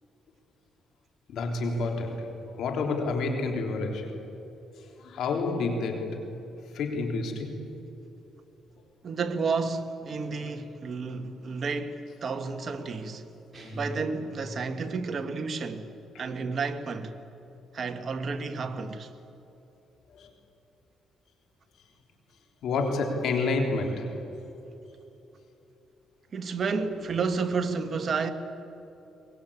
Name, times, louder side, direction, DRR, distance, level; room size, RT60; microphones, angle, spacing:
voice 1, 1.3-4.2 5.0-6.3 6.7-7.6 20.1-20.3 22.6-24.2, left 3 dB, 75° left, 3.4 m, -29 dB
voice 2, 9.0-13.3 13.7-15.9 16.2-17.1 17.7-19.1 26.3-28.3, right 4 dB, 45° right, 1.7 m, -31 dB
sound 1, 13.5-14.9, equal, 30° right, 6.5 m, -41 dB
23.0 x 20.5 x 8.6 m
cardioid pair, 90°, 0 cm